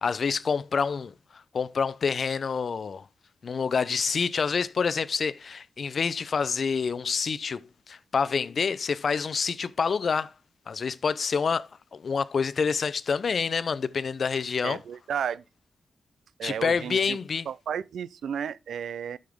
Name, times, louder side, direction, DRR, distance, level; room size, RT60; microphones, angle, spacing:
voice 1, 0.0-3.1 3.4-10.3 10.7-14.8 16.4-17.5, left 5 dB, 55° left, 0.5 m, -27 dB
voice 2, 14.6-15.4 16.4-17.2 17.5-19.2, right 8 dB, 85° right, 0.4 m, -33 dB
11.5 x 6.5 x 3.6 m
cardioid pair, 90°, 0 cm